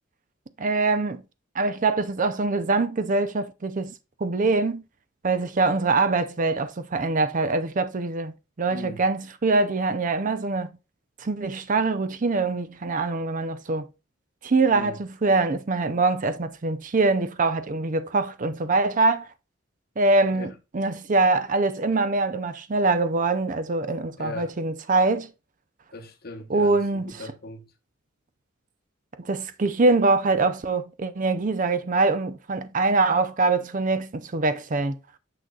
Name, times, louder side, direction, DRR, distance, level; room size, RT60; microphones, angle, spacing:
voice 1, 0.6-1.2 1.5-3.9 4.2-4.8 5.2-10.7 11.2-13.9 14.4-19.3 20.0-25.3 26.5-27.2 29.2-35.0, right 3 dB, 40° right, 0.5 m, -24 dB
voice 2, 8.7-9.0 14.7-15.0 20.3-20.5 24.2-24.6 25.9-27.7, left 2 dB, 50° left, 0.9 m, -39 dB
6.8 x 6.2 x 2.3 m
head